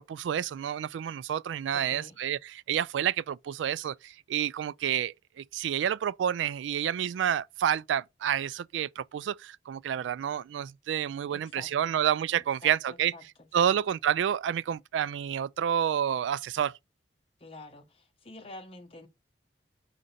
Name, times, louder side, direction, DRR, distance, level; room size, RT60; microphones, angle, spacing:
voice 1, 0.0-13.1 13.5-16.8, right 9 dB, 90° right, 0.3 m, -29 dB
voice 2, 1.7-2.2 11.3-11.9 12.3-13.2 13.6-13.7 17.4-19.1, left 2 dB, 30° left, 1.2 m, -48 dB
5.1 x 4.9 x 4.1 m
head